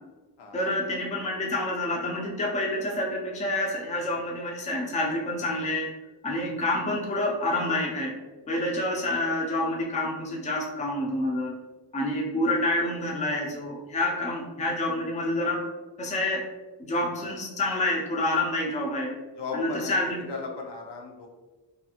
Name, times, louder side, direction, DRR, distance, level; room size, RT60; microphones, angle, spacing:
voice 1, 0.5-5.9 6.2-8.1 8.5-11.5 11.9-15.6 16.0-16.5 16.8-19.2 19.5-20.2, left 1 dB, 20° left, -1 dB, 0.4 m, -28 dB
voice 2, 19.4-19.9 20.3-21.3, left 4 dB, 80° left, 1 dB, 0.6 m, -36 dB
2.5 x 2.4 x 2.8 m, 1.2 s
wide cardioid pair, 135°, 41 cm